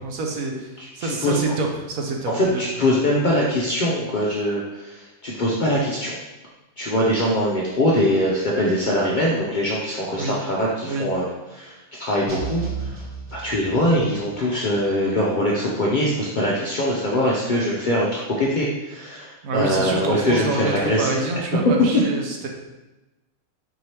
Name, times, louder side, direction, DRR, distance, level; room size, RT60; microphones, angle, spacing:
voice 1, 0.0-0.7 0.9-2.6 10.2-10.4 10.8-11.1 19.4-22.5, right 3 dB, 80° right, 1 dB, 1.1 m, -27 dB
voice 2, 0.8-1.4 2.3-6.2 6.8-11.3 11.5-12.9 13.3-21.2 21.9-22.0, left 1 dB, 60° left, -5 dB, 0.5 m, -22 dB
sound 1, 12.3-14.2, right 6 dB, 45° right, 0.4 m, -33 dB
4.5 x 3.2 x 2.8 m, 1.1 s
omnidirectional pair, 1.4 m